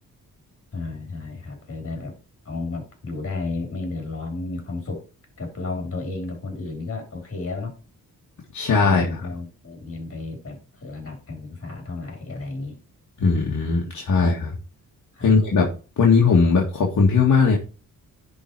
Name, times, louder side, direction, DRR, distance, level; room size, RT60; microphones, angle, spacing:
voice 1, 0.7-2.2 2.5-5.0 5.4-7.7 8.8-12.8 15.1-15.3, left 3 dB, 40° left, 3 dB, 3.5 m, -33 dB
voice 2, 8.5-9.2 13.2-14.5 15.2-15.7 16.0-17.6, left 4 dB, 55° left, -2 dB, 1.8 m, -18 dB
10.5 x 4.0 x 4.6 m, 0.33 s
wide cardioid pair, 125°, 35 cm